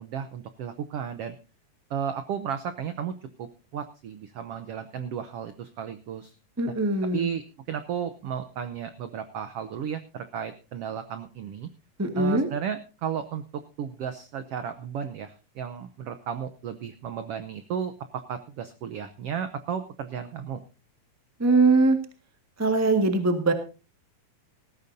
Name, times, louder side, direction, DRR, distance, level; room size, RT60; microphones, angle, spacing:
voice 1, 0.0-1.3 1.9-6.3 6.7-6.8 7.1-7.4 7.7-11.7 12.2-20.6, right 8 dB, 85° right, 10 dB, 1.3 m, -34 dB
voice 2, 6.6-7.3 12.0-12.5 21.4-22.0 22.6-23.5, right 3 dB, 25° right, 6 dB, 0.3 m, -21 dB
19.0 x 14.5 x 2.7 m, 0.33 s
omnidirectional pair, 3.8 m